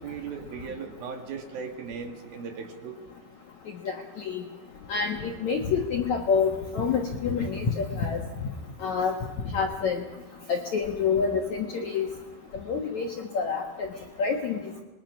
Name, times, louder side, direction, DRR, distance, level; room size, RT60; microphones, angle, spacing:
voice 1, 0.0-3.0, right 6 dB, 60° right, 5 dB, 3.3 m, -37 dB
voice 2, 3.8-4.4 4.9-8.2 8.8-9.1 9.5-10.0 10.5-12.1 12.7-13.9 14.2-14.6, left 5 dB, 60° left, 3 dB, 1.9 m, -27 dB
27.5 x 22.0 x 6.2 m, 1.0 s
omnidirectional pair, 5.3 m